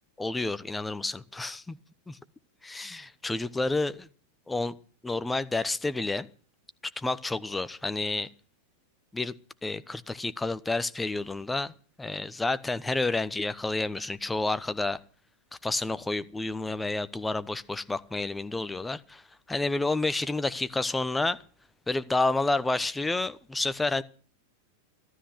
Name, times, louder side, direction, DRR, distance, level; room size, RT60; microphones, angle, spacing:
voice 1, 0.2-1.8 2.1-2.2 2.6-4.1 4.5-4.7 5.0-6.3 7.0-8.3 9.1-9.3 9.6-11.7 12.0-15.0 15.6-19.2 19.5-21.4 21.9-24.0, left 2 dB, 10° left, 0.9 m, -29 dB
15.0 x 13.0 x 6.4 m
figure-of-eight pair, 90°, 0 cm